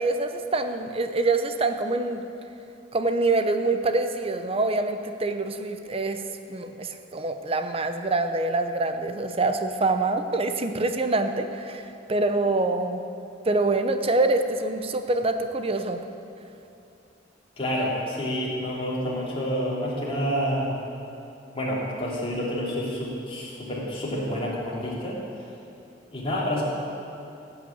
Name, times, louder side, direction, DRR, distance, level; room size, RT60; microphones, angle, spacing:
voice 1, 0.0-2.2 2.9-6.2 6.5-13.0 13.5-16.0, right 2 dB, 30° right, 7 dB, 0.7 m, -25 dB
voice 2, 17.6-20.7 21.5-25.2 26.1-26.6, equal, 30° left, -6 dB, 3.0 m, -28 dB
16.0 x 5.9 x 8.7 m, 2.8 s
head